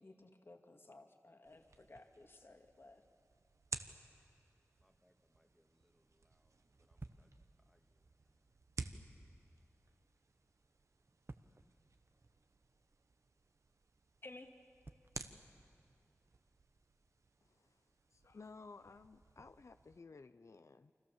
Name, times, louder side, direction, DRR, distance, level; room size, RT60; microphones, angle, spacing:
voice 1, 0.0-3.0 14.2-14.5, left 2 dB, 50° left, 2.0 m, -57 dB
sound 1, 1.4-20.0, right 3 dB, 75° right, 1.1 m, -54 dB
sound 2, 4.7-16.4, right 2 dB, 45° right, 0.9 m, -62 dB
voice 2, 4.8-8.5, equal, ahead, 1.8 m, -77 dB
voice 3, 17.4-17.9 18.1-20.9, left 4 dB, 70° left, 0.6 m, -56 dB
29.5 x 25.5 x 7.3 m
wide cardioid pair, 60°, 5 cm